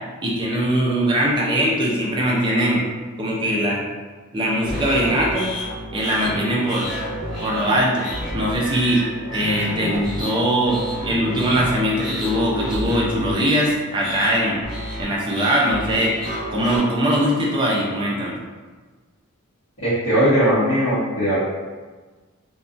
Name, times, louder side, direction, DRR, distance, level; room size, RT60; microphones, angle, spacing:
voice 1, 0.2-2.8 3.2-3.8 4.3-5.5 5.9-6.9 7.4-8.1 8.3-9.0 9.3-10.8 11.0-14.6 15.0-16.1 16.5-18.3, equal, 20° right, -4 dB, 0.5 m, -21 dB
sound 1, 4.6-16.8, equal, ahead, 1.2 m, -30 dB
voice 2, 19.8-21.4, equal, 70° left, -14 dB, 0.9 m, -19 dB
2.6 x 2.2 x 2.4 m, 1.4 s
head